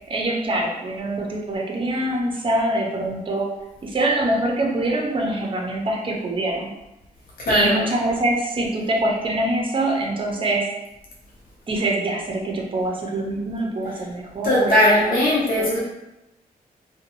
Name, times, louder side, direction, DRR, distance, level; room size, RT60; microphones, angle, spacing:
voice 1, 0.1-3.5 3.8-6.7 7.5-10.7 11.7-14.8 15.1-15.3 15.6-15.8, right 1 dB, 30° right, 0 dB, 0.6 m, -24 dB
voice 2, 7.4-7.8 14.4-15.8, left 1 dB, 60° left, -5 dB, 0.8 m, -18 dB
2.5 x 2.2 x 2.9 m, 0.95 s
cardioid pair, 95°, 16 cm